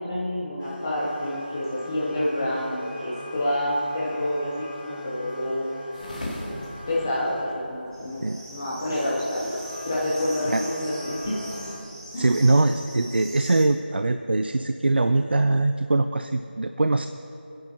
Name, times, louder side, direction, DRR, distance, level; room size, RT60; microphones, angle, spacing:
voice 1, 0.0-5.6 6.9-8.2 8.5-9.6 9.8-11.3 12.1-12.3, left 1 dB, 15° left, -7 dB, 1.0 m, -28 dB
sound 1, 0.6-7.5 9.4-11.8, left 1 dB, 55° right, 3.0 m, -40 dB
sound 2, 5.9-11.5, left 1 dB, 45° left, 2.3 m, -41 dB
sound 3, 7.9-13.7, right 1 dB, 25° right, 1.2 m, -42 dB
voice 2, 12.1-17.1, right 2 dB, 70° right, 9 dB, 0.4 m, -22 dB
25.0 x 10.5 x 3.0 m, 2.8 s
figure-of-eight pair, 175°, 6 cm